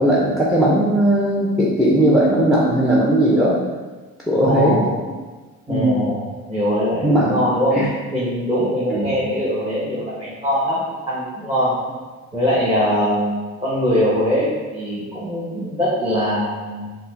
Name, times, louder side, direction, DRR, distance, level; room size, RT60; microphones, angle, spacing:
voice 1, 0.0-3.6 4.3-4.9 5.7-6.1 7.0-7.4 7.7-7.9 8.9-9.1, right 1 dB, ahead, -5 dB, 0.6 m, -17 dB
voice 2, 4.4-4.9 5.7-7.8 8.1-11.7 12.3-16.9, equal, 15° right, -10 dB, 1.2 m, -22 dB
4.1 x 2.2 x 4.0 m, 1.3 s
cardioid pair, 90°, 30 cm